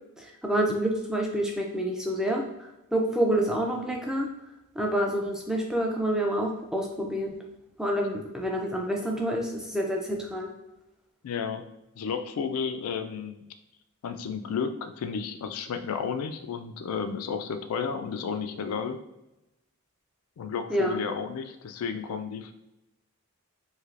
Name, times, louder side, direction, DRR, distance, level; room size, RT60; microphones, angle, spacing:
voice 1, 0.2-4.3 4.8-7.4 7.8-10.5 20.7-21.0, right 1 dB, 5° right, 0 dB, 0.3 m, -28 dB
voice 2, 11.2-11.6 12.0-13.5 14.0-19.0 20.4-22.5, left 6 dB, 70° left, 8 dB, 0.3 m, -32 dB
3.2 x 2.8 x 2.4 m, 0.94 s
head